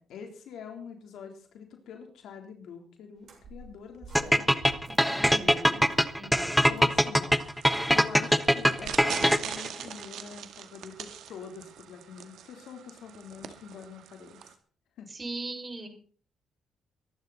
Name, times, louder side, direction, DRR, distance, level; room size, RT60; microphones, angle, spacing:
voice 1, 0.0-4.5 5.3-5.6 6.6-7.4 7.9-14.4 15.0-15.1, left 6 dB, 75° left, 4 dB, 3.5 m, -45 dB
sound 1, 3.2-8.4, right 3 dB, 55° right, 7.7 m, -51 dB
sound 2, 4.1-9.7, equal, ahead, 1.2 m, -22 dB
voice 2, 5.2-5.9 6.2-6.6 15.1-15.9, right 2 dB, 30° right, 4 dB, 6.0 m, -39 dB
sound 3, 7.4-14.5, right 9 dB, 75° right, 2.0 m, -42 dB
22.5 x 12.0 x 4.2 m, 0.43 s
cardioid pair, 90°, 0 cm